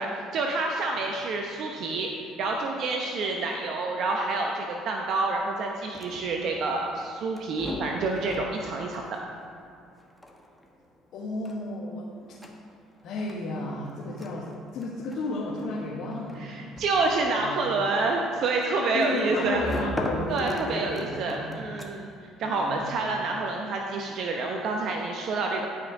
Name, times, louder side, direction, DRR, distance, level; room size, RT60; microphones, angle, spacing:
voice 1, 0.0-2.1 2.4-9.2 16.4-19.6 20.3-22.1 22.4-25.7, right 3 dB, 60° right, 1 dB, 0.8 m, -28 dB
sound 1, 5.7-22.3, left 1 dB, 5° left, 1.3 m, -40 dB
voice 2, 11.1-12.3 13.0-16.5 17.4-17.8 18.9-21.6 22.4-22.9, left 2 dB, 65° left, -5 dB, 1.4 m, -33 dB
11.0 x 5.3 x 5.0 m, 2.4 s
hypercardioid pair, 70°, 0 cm